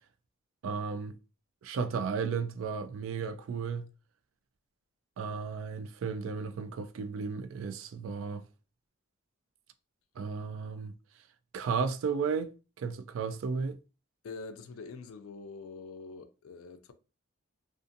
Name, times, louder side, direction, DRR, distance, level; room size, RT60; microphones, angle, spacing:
voice 1, 0.6-1.2 1.6-3.9 5.2-8.4 10.2-10.9 11.5-12.5 12.8-13.8, right 5 dB, 70° right, 0.3 m, -34 dB
voice 2, 14.2-16.9, left 4 dB, 75° left, 0.4 m, -45 dB
2.5 x 2.4 x 2.5 m
head